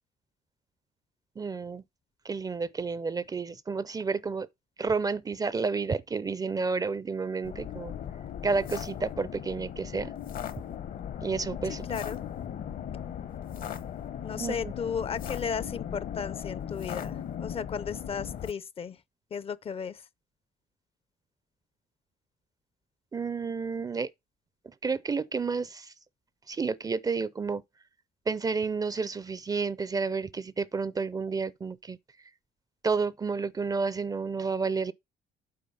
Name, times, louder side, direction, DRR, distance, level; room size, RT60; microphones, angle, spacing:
voice 1, 1.4-1.8 2.2-4.5 4.8-7.9 8.4-10.1 11.2-11.9 14.4-14.7 23.1-24.1 24.8-25.9 26.5-27.6 28.3-32.0 32.8-34.9, right 4 dB, 20° right, 0.5 m, -30 dB
sound 1, 7.4-18.5, left 9 dB, 55° left, 0.9 m, -38 dB
voice 2, 11.9-12.2 14.2-19.0 19.3-20.0, left 6 dB, 35° left, 0.5 m, -35 dB
8.6 x 4.2 x 5.4 m
cardioid pair, 110°, 17 cm